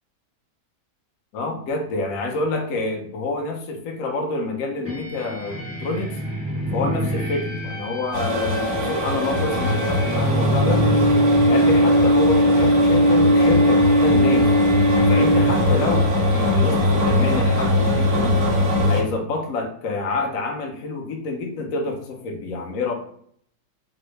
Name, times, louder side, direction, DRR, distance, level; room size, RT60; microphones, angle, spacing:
voice 1, 1.3-6.2 6.7-10.8 11.5-14.5 15.1-18.4 18.8-22.9, left 3 dB, 80° left, 2 dB, 0.7 m, -27 dB
sound 1, 4.8-15.9, equal, 15° right, 0.5 m, -20 dB
sound 2, 8.1-19.0, left 1 dB, 55° right, 1.1 m, -21 dB
3.5 x 2.1 x 3.0 m, 0.64 s
omnidirectional pair, 2.3 m